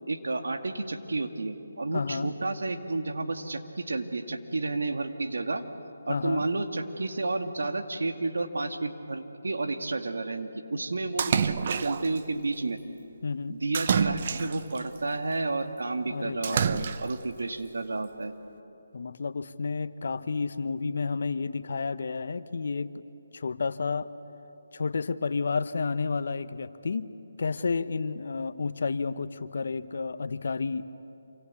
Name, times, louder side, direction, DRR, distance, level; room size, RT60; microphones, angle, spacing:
voice 1, 0.1-5.7 6.1-12.8 13.5-18.3, right 3 dB, 80° right, 6 dB, 2.2 m, -31 dB
voice 2, 1.9-2.3 6.1-6.4 13.2-13.6 16.1-16.9 18.9-22.9 23.3-24.1 24.7-27.1 27.4-30.9, left 4 dB, 60° left, 13 dB, 1.1 m, -31 dB
Splash splatter, 11.2-12.2 13.7-14.8 16.4-17.3, right 6 dB, 40° right, 0.9 m, -27 dB
27.5 x 25.0 x 8.5 m, 2.8 s
figure-of-eight pair, 160°, 0 cm